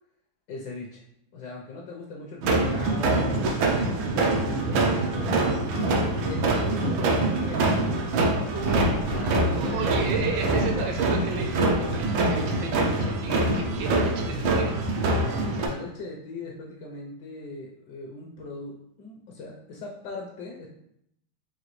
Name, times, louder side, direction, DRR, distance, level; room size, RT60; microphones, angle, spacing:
voice 1, 0.5-1.0 1.3-8.1 8.7-11.0 15.4-20.7, left 3 dB, 70° left, -2 dB, 1.1 m, -40 dB
sound 1, 2.4-15.7, right 2 dB, 90° right, 1.5 m, -24 dB
voice 2, 8.5-9.0 9.5-14.7 15.5-15.8, right 5 dB, 75° right, 2 dB, 1.4 m, -33 dB
4.9 x 2.7 x 3.0 m, 0.75 s
omnidirectional pair, 2.1 m